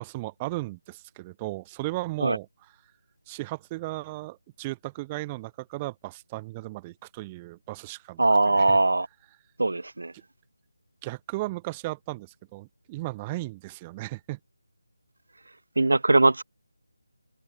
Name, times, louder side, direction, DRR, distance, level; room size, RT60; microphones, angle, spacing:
voice 1, 0.0-2.5 3.3-8.8 11.0-14.4, right 20 dB, 15° right, 3.1 m, -35 dB
voice 2, 8.2-9.1 9.6-10.1 15.8-16.4, right 2 dB, 70° right, 2.1 m, -21 dB
open air
figure-of-eight pair, 160°, 0 cm